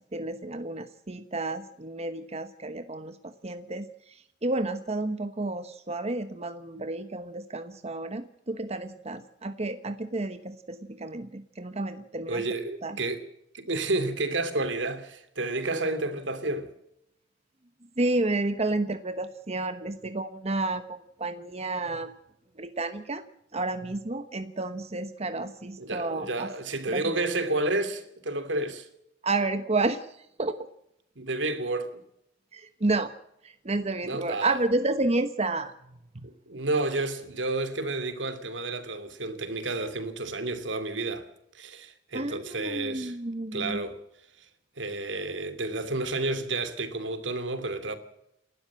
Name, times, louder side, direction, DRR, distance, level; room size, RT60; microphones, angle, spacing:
voice 1, 0.1-12.4 12.8-13.0 18.0-22.1 22.6-23.2 23.5-26.5 26.9-27.2 29.2-30.6 32.5-33.1 33.4-35.7 36.1-36.3 42.1-43.8, right 2 dB, 35° right, 1.1 m, -31 dB
voice 2, 12.3-13.3 13.5-16.7 25.8-28.9 31.2-32.0 34.0-34.6 36.2-41.3 41.5-43.2 43.5-44.0 44.4-44.5 44.8-47.9, right 2 dB, 75° right, 2.9 m, -30 dB
29.5 x 12.5 x 7.6 m
head